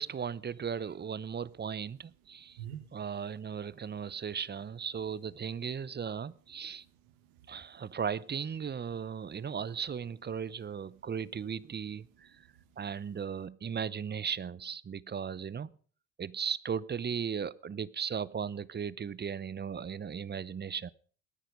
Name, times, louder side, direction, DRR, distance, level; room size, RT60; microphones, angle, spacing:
voice 1, 0.0-2.6 2.9-6.8 7.5-12.3 12.8-15.7 16.2-20.9, right 7 dB, 25° right, 0.7 m, -37 dB
voice 2, 2.4-3.0 3.7-4.2 6.6-8.0 9.2-9.4 12.1-12.9, right 10 dB, 85° right, 1.7 m, -51 dB
18.5 x 10.0 x 5.2 m
supercardioid pair, 70°, 39 cm